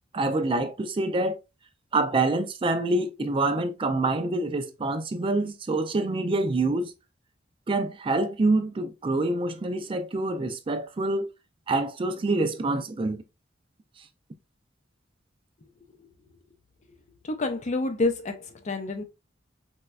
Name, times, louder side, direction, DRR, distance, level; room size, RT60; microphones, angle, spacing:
voice 1, 0.1-1.4 1.9-6.9 7.7-11.3 11.7-13.2, right 2 dB, 30° right, 0.4 m, -26 dB
voice 2, 17.2-19.0, left 2 dB, 40° left, 0.5 m, -28 dB
4.1 x 2.3 x 2.2 m
head